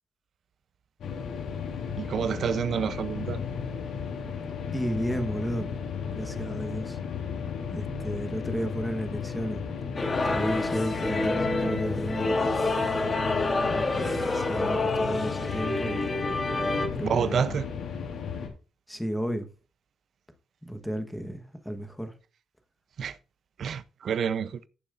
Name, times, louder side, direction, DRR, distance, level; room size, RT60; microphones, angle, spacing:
sound 1, 1.0-18.5, left 6 dB, 75° left, 2.7 m, -35 dB
voice 1, 2.0-3.4 11.5-11.8 17.0-17.7 23.0-23.2 23.6-24.6, right 7 dB, 55° right, 0.6 m, -29 dB
voice 2, 4.7-5.7 6.1-7.0 7.7-9.6 10.2-12.6 13.7-16.1 16.9-17.6 18.9-19.5 20.6-22.1, equal, ahead, 1.2 m, -33 dB
sound 2, 10.0-16.9, left 2 dB, 30° left, 2.1 m, -28 dB
14.5 x 7.1 x 2.5 m
cardioid pair, 120°, 0 cm